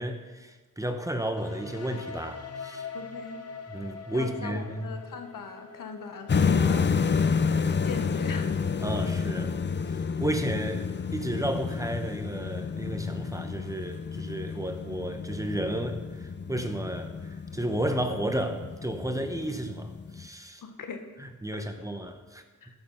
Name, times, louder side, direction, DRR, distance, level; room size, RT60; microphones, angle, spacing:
voice 1, 0.0-2.9 3.7-4.9 8.8-9.6 9.9-20.6 21.2-22.4, right 1 dB, 10° right, 6 dB, 0.9 m, -33 dB
sound 1, 1.4-9.1, left 5 dB, 50° left, 1.0 m, -44 dB
voice 2, 2.9-3.4 4.1-7.3 7.8-8.5 20.6-21.0 22.6-22.7, left 5 dB, 80° left, 6 dB, 1.3 m, -40 dB
sound 2, 6.3-20.3, left 5 dB, 35° left, 0.6 m, -30 dB
14.0 x 6.7 x 5.6 m, 1.3 s
wide cardioid pair, 110°, 33 cm